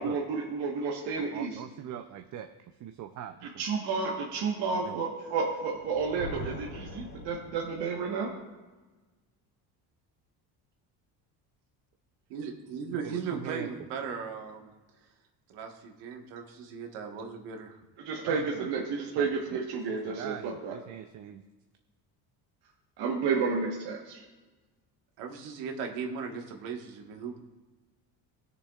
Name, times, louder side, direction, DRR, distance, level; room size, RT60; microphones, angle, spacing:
voice 1, 0.0-1.6 3.4-8.3 18.0-20.8 23.0-24.2, right 5 dB, 70° right, -2 dB, 1.4 m, -31 dB
voice 2, 1.2-2.5 2.8-3.3 4.9-5.0 13.0-13.7 18.3-18.7 19.2-19.3 19.9-21.4, right 10 dB, 45° right, 7 dB, 0.6 m, -41 dB
Thunder, 5.7-8.0, left 1 dB, 40° left, 2.3 m, -42 dB
voice 3, 12.3-14.7 15.5-17.8 25.2-27.4, right 6 dB, 90° right, 3 dB, 1.5 m, -37 dB
20.5 x 6.8 x 2.4 m, 1.2 s
cardioid pair, 120°, 41 cm